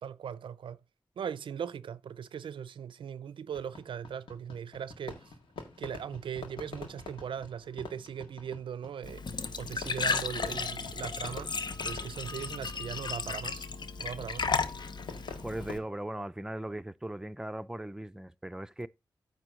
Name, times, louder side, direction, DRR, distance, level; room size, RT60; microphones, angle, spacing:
voice 1, 0.0-0.8 1.2-5.3 5.8-13.7 14.0-14.5, right 8 dB, 85° right, 0.4 m, -39 dB
Fireworks, 3.5-15.8, left 4 dB, 90° left, 1.8 m, -47 dB
Glass / Trickle dribble / Fill (with liquid), 9.0-15.8, left 5 dB, 60° left, 0.7 m, -34 dB
voice 2, 15.4-18.9, right 1 dB, 5° right, 0.5 m, -38 dB
9.0 x 3.4 x 6.3 m
cardioid pair, 50°, 8 cm